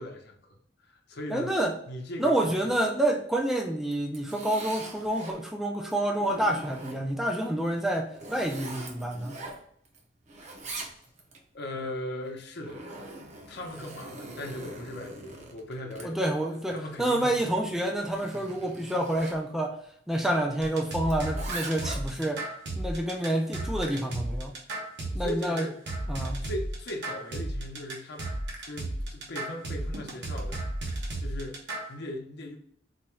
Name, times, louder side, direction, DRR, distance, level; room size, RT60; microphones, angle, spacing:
voice 1, 0.0-1.6 1.9-2.8 11.5-12.8 13.5-16.2 16.7-17.5 25.2-25.8 26.4-28.3 28.7-30.6 31.2-32.6, left 1 dB, 60° left, 3 dB, 0.8 m, -38 dB
voice 2, 1.3-1.7 2.2-9.4 16.0-19.8 20.1-22.5 22.8-24.6 25.1-25.7 26.1-26.4, right 1 dB, ahead, 1 dB, 0.4 m, -28 dB
Zipper (clothing), 3.8-5.4 5.9-7.3 7.8-10.0 10.3-11.4 12.3-19.4 21.1-22.3, right 2 dB, 40° right, 0.7 m, -43 dB
sound 1, 20.6-31.9, right 1 dB, 65° right, 1.0 m, -34 dB
4.1 x 2.3 x 3.0 m, 0.66 s
head